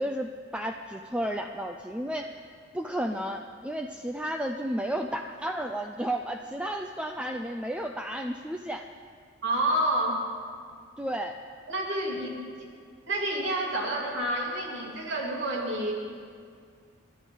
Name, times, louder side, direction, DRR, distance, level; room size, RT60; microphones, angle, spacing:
voice 1, 0.0-2.4 2.7-8.9 11.0-11.4, right 1 dB, 5° right, 3 dB, 0.4 m, -32 dB
voice 2, 9.4-10.2 11.7-12.5 13.1-15.9, right 1 dB, 70° right, -2 dB, 3.2 m, -29 dB
29.0 x 12.0 x 4.0 m, 2.1 s
head